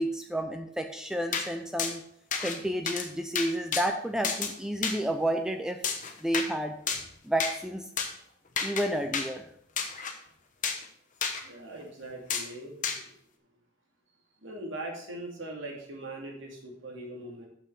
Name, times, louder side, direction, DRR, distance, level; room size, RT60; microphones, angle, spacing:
voice 1, 0.0-2.0 2.4-5.8 6.2-6.8 7.2-7.9 8.6-9.4, right 1 dB, 5° right, 5 dB, 0.5 m, -30 dB
sound 1, 1.3-1.5 1.8-1.9 2.3-2.6 2.9-3.1 3.3-3.8 4.2-4.5 4.8-5.0 5.8-6.5 6.9-7.1 7.4-7.5 8.0-8.1 8.6-8.8 9.1-9.3 9.8-10.1 10.6-10.8 11.2-11.4 12.3-12.5 12.8-13.0, left 6 dB, 40° left, 1.1 m, -30 dB
voice 2, 11.4-13.1 14.4-17.5, right 2 dB, 70° right, -1 dB, 2.6 m, -41 dB
6.8 x 6.1 x 6.6 m, 0.68 s
head